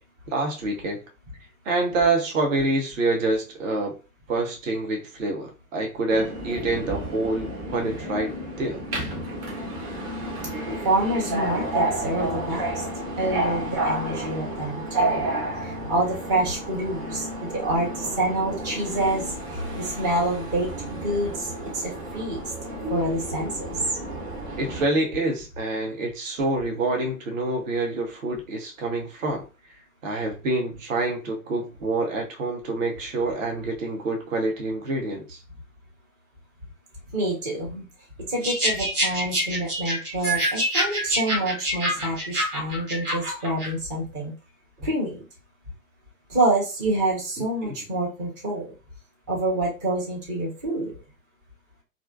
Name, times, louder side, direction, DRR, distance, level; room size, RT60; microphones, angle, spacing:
voice 1, 0.3-1.0 1.7-4.0 4.3-8.8 24.6-29.4 30.0-35.4 44.8-44.9 47.6-47.7, right 2 dB, 60° right, 0.7 m, -27 dB
Subway metro underground, 6.1-24.8, right 1 dB, 35° right, 0.9 m, -31 dB
voice 2, 10.8-12.8 13.2-15.2 15.6-22.4 22.9-23.8 37.1-37.9 38.2-44.3 44.8-45.3 46.3-48.7 49.3-51.0, right 2 dB, 15° right, 0.4 m, -27 dB
sound 1, 38.4-43.7, equal, 80° right, 1.3 m, -26 dB
2.5 x 2.1 x 2.3 m
figure-of-eight pair, 105°, 44 cm